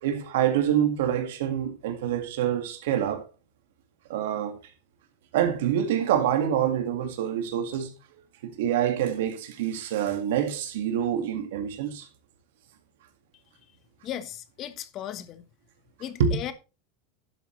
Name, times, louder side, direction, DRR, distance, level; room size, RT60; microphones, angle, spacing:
voice 1, 0.0-3.3 4.1-4.6 5.3-7.9 8.4-12.1 16.2-16.4, right 9 dB, 75° right, 2.0 m, -26 dB
voice 2, 14.0-15.4 16.0-16.5, left 11 dB, 40° left, 1.2 m, -36 dB
11.5 x 7.9 x 3.2 m
supercardioid pair, 130°, 0 cm